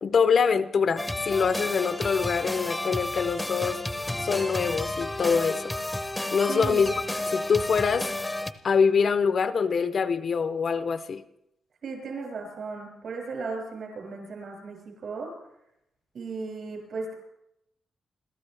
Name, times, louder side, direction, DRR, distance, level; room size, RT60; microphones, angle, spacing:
voice 1, 0.0-3.8 4.2-5.8 6.3-7.0 7.3-8.1 8.6-11.2, left 6 dB, 45° left, 11 dB, 0.6 m, -24 dB
sound 1, 1.0-8.5, left 1 dB, 5° left, 0.8 m, -31 dB
voice 2, 6.5-6.9 11.8-15.3 16.1-17.1, right 4 dB, 55° right, 1 dB, 7.0 m, -36 dB
29.5 x 14.0 x 3.4 m, 0.81 s
wide cardioid pair, 160°, 0 cm